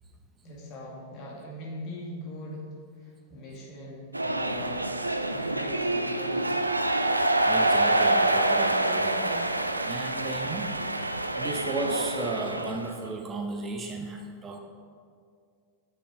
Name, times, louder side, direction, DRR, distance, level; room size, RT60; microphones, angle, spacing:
voice 1, 0.4-2.6 3.0-4.9 5.3-6.6, left 1 dB, 40° left, -3 dB, 2.3 m, -41 dB
sound 1, 4.1-12.9, right 2 dB, 85° right, 0.4 m, -26 dB
voice 2, 7.5-9.6 9.8-11.0 11.4-14.6, right 3 dB, 20° right, 2 dB, 0.8 m, -35 dB
7.8 x 6.8 x 5.0 m, 2.2 s
figure-of-eight pair, 90°, 0 cm